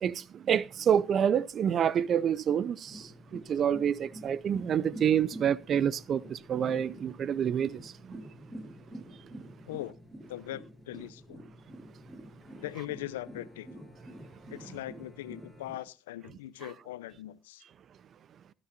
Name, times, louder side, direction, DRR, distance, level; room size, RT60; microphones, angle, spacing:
voice 1, 0.0-8.2, right 8 dB, 50° right, 0.6 m, -28 dB
sound 1, 2.9-15.8, right 1 dB, 20° right, 7.6 m, -48 dB
voice 2, 10.3-11.4 12.6-13.7 14.5-17.6, left 15 dB, 90° left, 0.6 m, -40 dB
18.0 x 11.0 x 2.6 m
hypercardioid pair, 65°, 0 cm